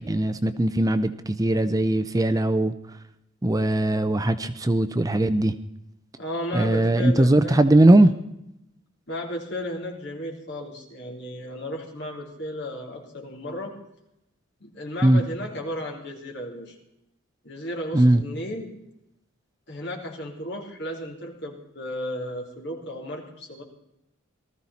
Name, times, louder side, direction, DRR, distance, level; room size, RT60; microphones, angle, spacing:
voice 1, 0.1-2.7 3.4-5.5 6.5-8.1 15.0-15.2 17.9-18.2, right 1 dB, 15° right, 11 dB, 0.6 m, -19 dB
voice 2, 6.2-7.6 9.1-13.7 14.6-16.8 17.4-18.7 19.7-23.6, left 1 dB, 60° left, 0 dB, 3.6 m, -34 dB
19.0 x 14.0 x 4.2 m, 0.84 s
head